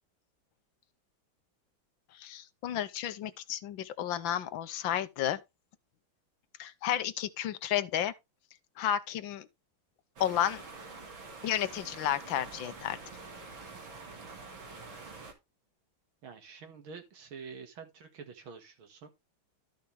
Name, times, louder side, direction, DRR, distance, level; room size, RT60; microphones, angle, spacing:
voice 1, 2.1-5.4 6.6-8.1 8.8-9.5 10.2-10.6 11.4-13.0, left 11 dB, 75° left, 1.5 m, -32 dB
sound 1, 10.2-15.3, right 3 dB, 75° right, 3.0 m, -46 dB
voice 2, 16.2-19.1, right 5 dB, 90° right, 2.5 m, -47 dB
13.0 x 5.8 x 3.3 m
omnidirectional pair, 2.2 m